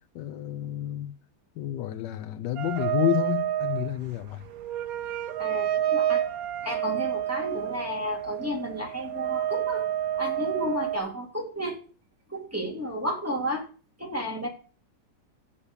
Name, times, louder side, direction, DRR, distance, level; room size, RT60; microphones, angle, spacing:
voice 1, 0.1-1.1 1.6-4.4, left 13 dB, 80° left, 1.3 m, -29 dB
sound 1, 2.6-11.0, right 11 dB, 65° right, 1.1 m, -29 dB
voice 2, 5.4-6.2 6.6-9.9 10.2-11.8 12.3-13.7 14.0-14.5, equal, 10° right, 2.5 m, -32 dB
7.2 x 7.0 x 6.8 m
omnidirectional pair, 1.9 m